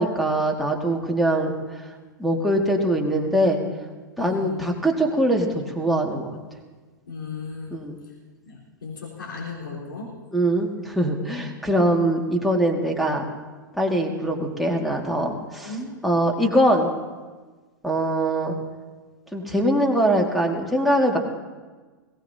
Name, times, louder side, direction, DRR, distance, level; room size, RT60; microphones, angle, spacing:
voice 1, 0.0-1.6 2.2-3.6 4.2-6.4 7.7-7.9 10.3-13.2 13.7-15.7 16.0-16.9 17.8-18.6 19.3-21.2, right 1 dB, ahead, -1 dB, 2.1 m, -22 dB
voice 2, 4.2-4.7 7.1-7.8 8.4-10.1 15.6-15.9, left 4 dB, 75° left, -5 dB, 4.1 m, -35 dB
21.5 x 17.0 x 2.8 m, 1.3 s
figure-of-eight pair, 95°, 11 cm